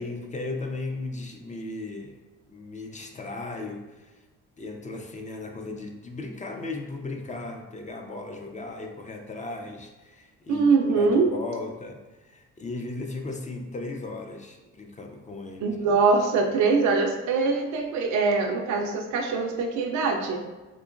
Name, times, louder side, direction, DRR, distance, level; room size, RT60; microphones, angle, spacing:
voice 1, 0.0-2.2 2.5-4.2 4.6-10.7 11.0-15.8, left 2 dB, 25° left, 3 dB, 0.4 m, -36 dB
voice 2, 10.5-11.3 15.6-20.4, right 4 dB, 70° right, 2 dB, 0.4 m, -23 dB
3.7 x 2.8 x 2.5 m, 1.2 s
cardioid pair, 90°, 30 cm